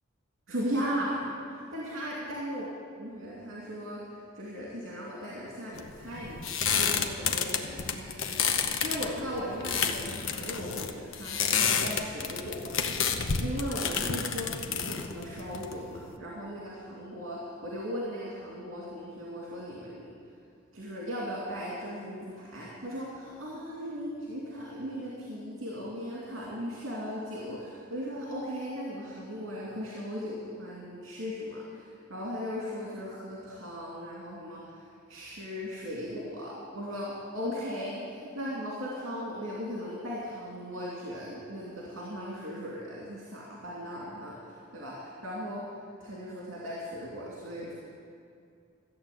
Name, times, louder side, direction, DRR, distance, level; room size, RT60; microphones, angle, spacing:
voice 1, 0.5-1.2 1.5-2.7 3.0-20.1 20.7-34.8 35.1-45.6 46.0-47.7, equal, 70° right, -5 dB, 2.7 m, -37 dB
sound 1, 5.8-16.1, left 6 dB, 75° left, 0.9 m, -30 dB
13.5 x 7.7 x 9.3 m, 2.4 s
head